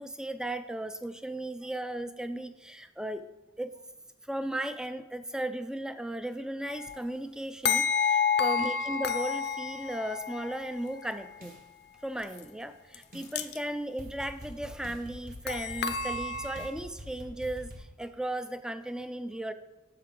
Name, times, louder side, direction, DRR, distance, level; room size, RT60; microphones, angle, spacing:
voice 1, 0.0-3.2 3.6-3.7 4.2-11.5 12.0-19.5, right 1 dB, 5° right, 10 dB, 0.3 m, -36 dB
sound 1, 6.7-7.0 7.7-10.6 12.4-12.5 12.9-13.0 13.2-13.6 15.5-16.7, left 6 dB, 55° left, 0.5 m, -29 dB
sound 2, 11.4-11.6 12.3-12.4 13.1-13.3 14.0-17.8, equal, 45° right, 1.5 m, -45 dB
9.4 x 6.7 x 3.7 m, 1.0 s
head